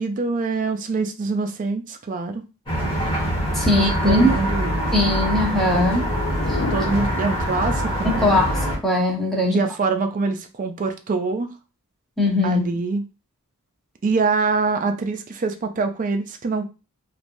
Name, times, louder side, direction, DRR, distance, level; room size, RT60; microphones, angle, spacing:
voice 1, 0.0-2.4 3.7-4.8 6.7-8.4 9.5-11.5 12.4-13.0 14.0-16.7, right 4 dB, 35° right, 7 dB, 0.4 m, -24 dB
sound 1, 2.7-8.8, equal, 25° left, 1.5 m, -24 dB
voice 2, 3.5-4.4 4.9-6.0 8.0-9.6 12.2-12.6, left 1 dB, ahead, -2 dB, 0.8 m, -20 dB
sound 2, 5.6-8.1, left 4 dB, 60° left, 0.4 m, -33 dB
3.3 x 2.5 x 2.5 m, 0.31 s
head